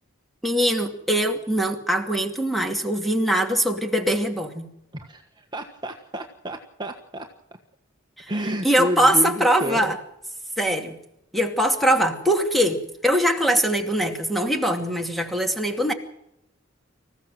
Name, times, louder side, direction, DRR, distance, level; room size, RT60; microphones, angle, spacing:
voice 1, 0.4-4.7 8.2-8.3 8.6-9.9 10.6-11.0 11.3-15.9, right 1 dB, ahead, 5 dB, 2.4 m, -22 dB
voice 2, 4.9-7.3 8.3-10.0, equal, 20° right, 4 dB, 1.4 m, -30 dB
26.0 x 15.0 x 7.7 m, 0.81 s
head